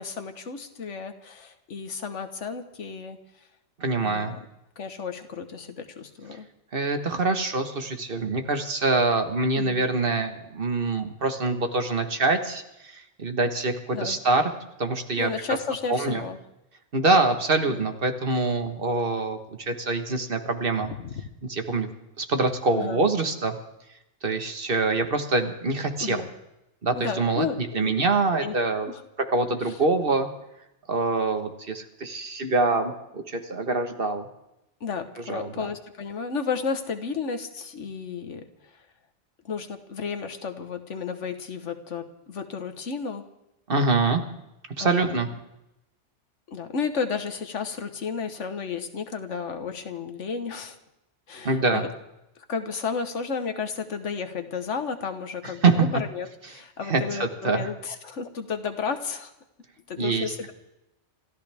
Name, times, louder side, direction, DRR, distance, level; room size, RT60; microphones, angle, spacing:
voice 1, 0.0-3.2 4.0-4.4 4.8-6.5 9.5-9.8 13.9-14.2 15.2-16.4 17.7-17.8 21.0-21.3 22.7-23.0 26.0-26.3 26.9-28.0 28.3-28.6 28.9-29.0 29.6-29.7 34.8-38.5 39.4-43.2 44.8-45.3 46.5-50.8 51.3-51.9 52.5-59.3 59.9-60.5, left 5 dB, 85° left, 8 dB, 1.6 m, -32 dB
voice 2, 3.8-4.3 6.7-14.4 14.8-15.3 15.9-16.2 16.9-20.9 21.5-21.9 22.2-23.6 24.2-26.2 26.8-28.9 29.3-30.3 30.9-34.3 35.3-35.7 43.7-44.2 44.8-45.3 51.4-51.8 55.6-55.9 56.8-57.7 60.0-60.3, right 3 dB, 50° right, 6 dB, 1.6 m, -25 dB
28.5 x 13.5 x 3.5 m, 0.89 s
omnidirectional pair, 1.2 m